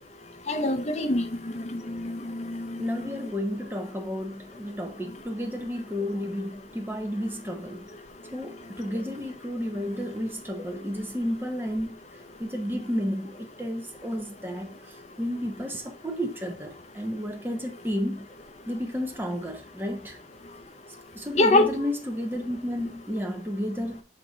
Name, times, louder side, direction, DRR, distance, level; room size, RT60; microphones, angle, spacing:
voice 1, 0.5-1.3 1.5-3.1 21.3-21.9, left 2 dB, 35° left, 0.7 m, -25 dB
voice 2, 2.8-8.0 8.3-12.0 12.4-18.3 18.7-20.2 21.1-24.0, equal, 10° right, 0.8 m, -32 dB
6.5 x 3.8 x 4.0 m
head